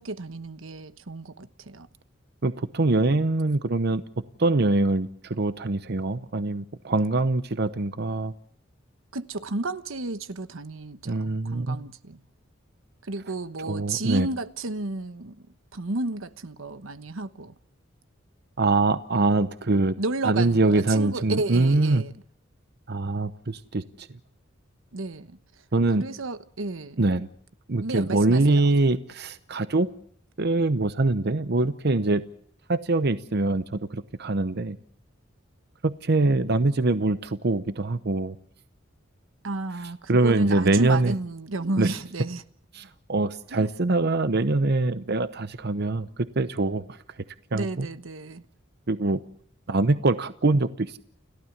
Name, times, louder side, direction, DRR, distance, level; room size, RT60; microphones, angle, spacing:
voice 1, 0.0-1.9 9.1-12.2 13.0-15.5 15.7-17.5 20.0-22.1 24.9-25.4 26.0-27.0 27.8-28.7 39.4-42.4 43.5-43.7 47.5-48.4, right 2 dB, 85° right, 1.1 m, -32 dB
voice 2, 2.4-4.0 4.4-8.3 11.0-11.8 13.6-14.3 18.6-20.0 20.2-22.0 22.9-24.1 25.7-26.0 27.0-27.3 27.7-29.9 30.4-32.2 32.7-34.8 35.8-38.4 40.1-41.1 41.8-42.0 42.7-46.1 46.4-47.0 47.5-47.9 48.9-49.2 49.7-51.0, right 2 dB, 55° right, 0.8 m, -23 dB
30.0 x 12.5 x 7.3 m
head